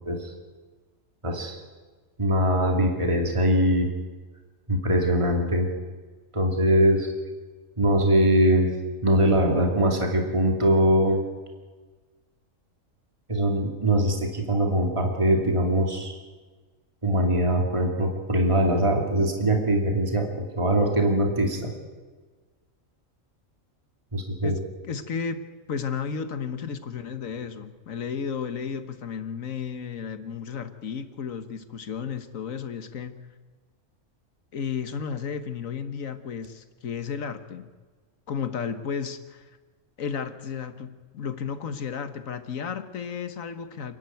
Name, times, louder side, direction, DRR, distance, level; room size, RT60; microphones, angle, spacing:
voice 1, 1.2-1.6 2.2-3.9 4.7-5.7 6.3-7.1 7.8-8.7 9.0-11.2 13.3-16.2 17.0-21.7 24.1-24.5, right 1 dB, 20° right, 2 dB, 2.6 m, -22 dB
voice 2, 24.4-33.2 34.5-37.7 38.3-39.5 40.0-44.0, left 6 dB, 80° left, 10 dB, 1.6 m, -33 dB
29.0 x 10.5 x 9.2 m, 1.4 s
omnidirectional pair, 1.4 m